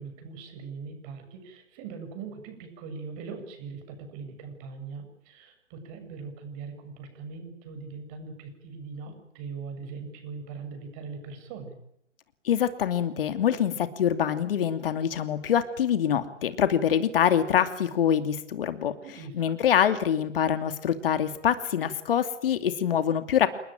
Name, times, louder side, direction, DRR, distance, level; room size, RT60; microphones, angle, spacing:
voice 1, 0.0-11.7 19.0-19.6, right 5 dB, 30° right, 7 dB, 7.5 m, -41 dB
voice 2, 12.4-18.9 19.3-23.5, left 9 dB, 50° left, 10 dB, 2.6 m, -25 dB
29.0 x 20.0 x 9.2 m, 0.75 s
figure-of-eight pair, 135°, 37 cm